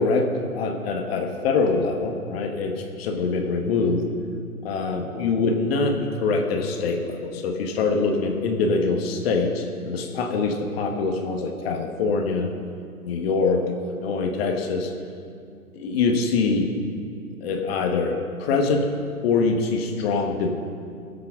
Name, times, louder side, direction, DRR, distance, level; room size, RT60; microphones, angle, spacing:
voice 1, 0.0-4.1 4.6-12.5 13.1-14.9 15.7-16.7 17.4-18.9 19.2-20.6, left 4 dB, 40° left, 3 dB, 1.5 m, -24 dB
19.0 x 7.9 x 6.0 m, 2.3 s
hypercardioid pair, 130°, 45 cm